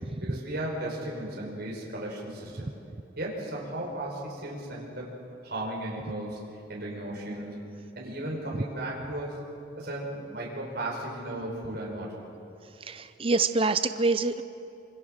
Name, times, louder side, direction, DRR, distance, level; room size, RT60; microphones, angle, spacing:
voice 1, 0.2-2.7 3.2-5.1 5.4-6.4 6.7-7.6 7.9-9.3 9.8-12.1, right 1 dB, 55° right, -3 dB, 5.0 m, -35 dB
voice 2, 12.9-14.4, right 3 dB, 30° right, 10 dB, 0.6 m, -26 dB
26.5 x 25.0 x 6.5 m, 2.7 s
head